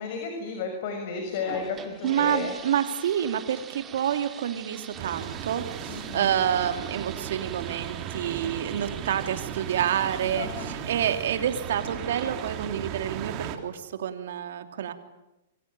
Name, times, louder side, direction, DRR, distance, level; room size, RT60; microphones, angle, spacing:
voice 1, 0.0-2.6 5.9-6.3 10.4-10.7, left 5 dB, 55° left, 5 dB, 6.1 m, -33 dB
sound 1, 1.1-13.6, right 7 dB, 20° right, 2.5 m, -45 dB
voice 2, 2.0-14.9, right 9 dB, 65° right, 8 dB, 3.0 m, -28 dB
sound 2, 4.9-13.6, right 10 dB, 40° right, 3.4 m, -36 dB
27.5 x 23.0 x 9.2 m, 0.95 s
hypercardioid pair, 115°, 0 cm